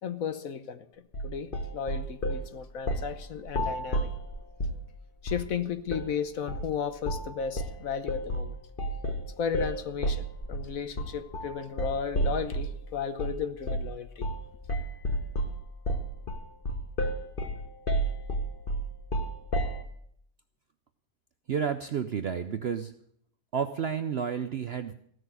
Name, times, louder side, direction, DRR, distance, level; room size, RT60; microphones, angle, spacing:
voice 1, 0.0-0.9 1.2-4.1 5.2-8.6 9.4-14.3, left 7 dB, 60° left, 1.2 m, -34 dB
sound 1, 1.1-2.4 2.9-3.1 3.5-4.8 5.3-5.5 5.9-6.1 6.5-6.7 7.0-7.3 7.6-12.8 13.2-13.4 13.7-13.9 14.2-14.4 14.7-19.8, right 1 dB, 35° left, 1.5 m, -31 dB
voice 2, 21.5-22.9 23.5-24.9, right 7 dB, 60° right, 0.7 m, -31 dB
16.0 x 6.4 x 9.4 m
omnidirectional pair, 1.7 m